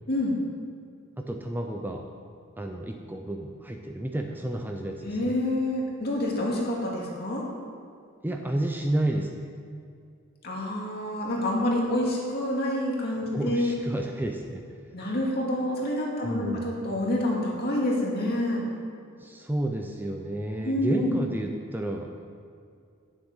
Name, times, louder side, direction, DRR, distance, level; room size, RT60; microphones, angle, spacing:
voice 1, 1.2-2.0 2.6-5.3 8.2-9.5 13.3-14.8 16.2-16.7 19.2-22.3, right 1 dB, 10° right, 3 dB, 0.6 m, -31 dB
voice 2, 5.0-7.4 10.4-13.8 14.9-18.6 20.6-21.2, left 1 dB, 50° left, -3 dB, 2.2 m, -27 dB
9.8 x 7.3 x 5.6 m, 2.3 s
head